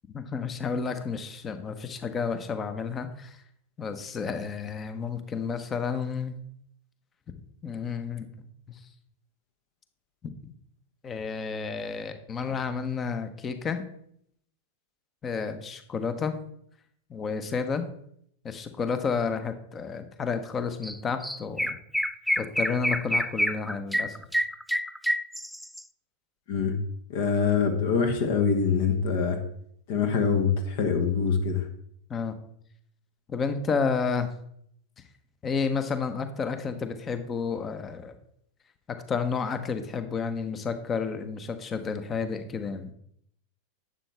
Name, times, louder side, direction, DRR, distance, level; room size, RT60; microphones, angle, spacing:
voice 1, 0.1-3.4 3.8-6.4 7.6-8.8 11.0-13.8 15.2-16.3 17.1-17.9 18.4-21.8 22.4-24.2 32.1-32.4 33.3-34.3 35.4-38.2 38.9-42.9, left 5 dB, 25° left, 10 dB, 1.1 m, -31 dB
Chirp tweet, 20.8-21.0 21.2-25.8, equal, ahead, 0.3 m, -27 dB
voice 2, 27.1-29.4 29.9-31.7, left 6 dB, 50° left, 6 dB, 1.3 m, -24 dB
11.5 x 8.0 x 3.5 m, 0.69 s
figure-of-eight pair, 90°, 0 cm